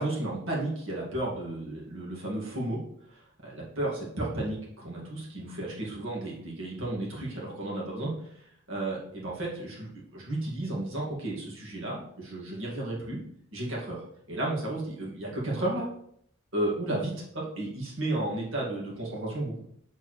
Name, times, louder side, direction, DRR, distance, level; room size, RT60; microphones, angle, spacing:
voice 1, 0.0-2.8 3.1-8.3 8.7-13.2 13.5-15.9 16.5-19.6, right 1 dB, 70° right, -4 dB, 1.9 m, -33 dB
6.8 x 4.4 x 3.1 m, 0.71 s
head